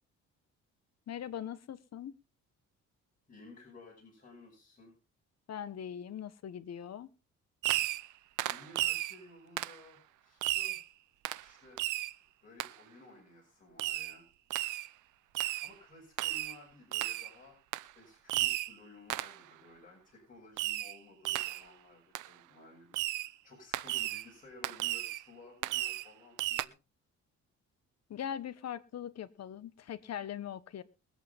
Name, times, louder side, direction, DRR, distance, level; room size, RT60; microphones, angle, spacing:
voice 1, 1.1-2.2 5.5-7.1 28.1-30.8, left 9 dB, 60° left, 1.3 m, -41 dB
voice 2, 3.3-4.9 8.5-10.9 11.4-11.8 12.4-14.3 15.6-17.6 17.9-26.7, left 2 dB, 25° left, 6.9 m, -55 dB
Fireworks, 7.6-8.1 8.4-9.2 9.6-9.8 10.4-10.8 11.2-11.4 11.8-12.1 12.6-12.7 13.8-14.1 14.5-14.9 15.3-15.7 16.2-16.6 16.9-17.3 17.7-17.9 18.3-18.7 19.1-19.4 20.6-21.0 21.2-21.6 22.1-22.3 22.9-23.3 23.7-24.3 24.6-25.2 25.6-26.1 26.4-26.7, right 16 dB, 85° right, 0.7 m, -34 dB
22.5 x 8.6 x 3.6 m
cardioid pair, 90°, 30 cm